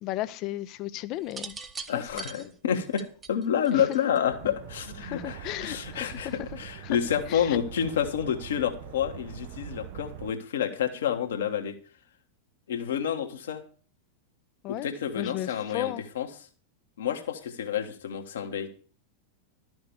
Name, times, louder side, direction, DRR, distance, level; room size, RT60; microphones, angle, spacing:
voice 1, 0.0-1.5 1.9-2.5 3.7-3.8 5.0-6.5 6.8-7.0 7.3-7.6 14.6-14.9 15.1-16.0, left 15 dB, 40° left, 17 dB, 0.6 m, -35 dB
sound 1, 1.2-4.4 5.5-5.8, right 5 dB, 20° right, 1.0 m, -41 dB
voice 2, 1.9-11.8 12.7-13.6 14.7-16.3 17.0-18.7, left 8 dB, 60° left, 6 dB, 1.4 m, -29 dB
sound 2, 4.2-10.3, right 13 dB, 50° right, 0.5 m, -43 dB
12.5 x 6.2 x 7.0 m, 0.41 s
figure-of-eight pair, 90°, 0 cm